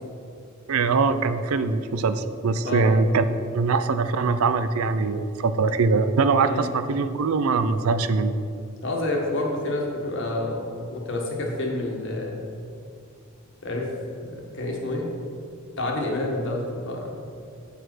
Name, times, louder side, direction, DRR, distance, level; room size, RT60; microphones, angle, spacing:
voice 1, 0.7-3.2 3.5-8.4, right 4 dB, 85° right, 11 dB, 0.5 m, -22 dB
voice 2, 8.8-12.4 13.6-15.1 15.8-17.2, left 2 dB, 60° left, -1 dB, 1.6 m, -28 dB
8.1 x 4.9 x 6.1 m, 2.4 s
head